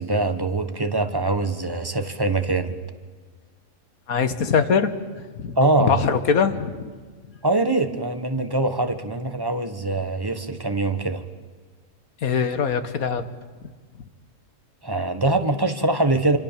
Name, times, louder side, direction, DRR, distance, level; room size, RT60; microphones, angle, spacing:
voice 1, 0.0-2.8 5.6-6.0 7.4-11.2 14.8-16.4, right 2 dB, 15° right, 8 dB, 1.3 m, -23 dB
voice 2, 4.1-4.9 5.4-6.8 12.2-13.3, left 6 dB, 90° left, 11 dB, 1.9 m, -22 dB
26.0 x 25.5 x 7.5 m, 1.5 s
omnidirectional pair, 1.5 m